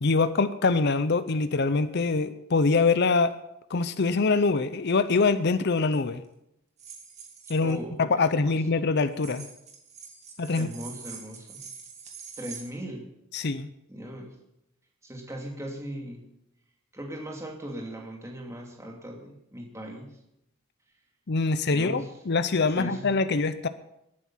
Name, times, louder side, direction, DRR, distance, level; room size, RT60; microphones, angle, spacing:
voice 1, 0.0-3.4 3.7-6.2 7.5-9.5 10.4-10.7 13.3-13.7 21.3-23.7, left 4 dB, 50° left, 12 dB, 0.6 m, -24 dB
sound 1, 5.8-6.0 6.8-7.7 9.1-12.6, right 6 dB, 30° right, 2.4 m, -45 dB
voice 2, 7.6-8.0 8.3-8.6 10.5-11.6 12.4-13.1 13.9-14.3 15.0-16.3 16.9-20.2 21.7-22.1 22.7-23.1, right 1 dB, 15° right, 0 dB, 2.5 m, -39 dB
18.5 x 9.6 x 5.7 m, 0.82 s
head